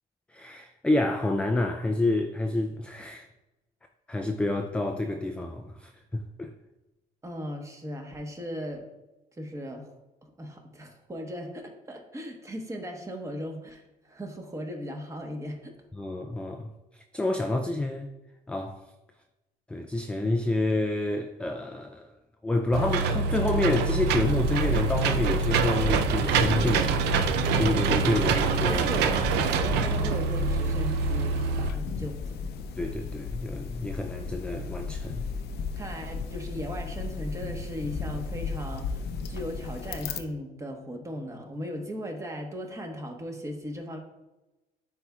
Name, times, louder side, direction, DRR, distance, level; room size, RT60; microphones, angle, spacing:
voice 1, 0.3-3.3 4.1-6.5 15.9-16.7 17.1-18.1 18.5-18.8 19.7-22.1 22.4-28.9 32.8-35.2, left 2 dB, 5° left, 0.4 m, -28 dB
voice 2, 7.2-8.9 9.4-9.9 10.2-15.7 28.7-32.4 35.7-44.0, equal, 20° right, 1.2 m, -37 dB
Engine / Mechanisms, 22.7-31.7, right 5 dB, 80° right, 0.5 m, -25 dB
sound 1, 24.2-40.2, left 4 dB, 75° left, 0.6 m, -34 dB
9.7 x 4.3 x 2.3 m
cardioid pair, 110°, 17 cm